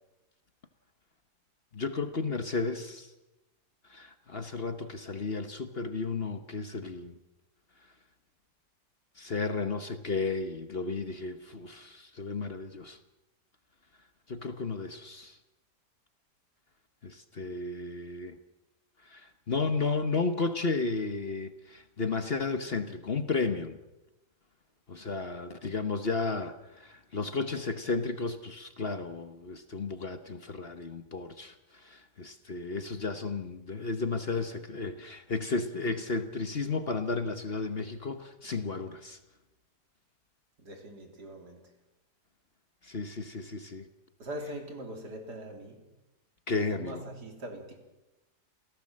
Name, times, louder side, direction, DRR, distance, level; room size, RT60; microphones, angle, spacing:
voice 1, 1.7-3.1 3.9-7.1 9.2-13.0 14.3-15.4 17.0-18.4 19.0-23.8 24.9-39.2 42.8-43.8 46.5-47.0, left 4 dB, 40° left, 1.2 m, -33 dB
voice 2, 40.6-41.6 44.2-45.8 46.7-47.8, right 1 dB, 75° right, 3.9 m, -42 dB
28.0 x 17.0 x 7.6 m
omnidirectional pair, 1.8 m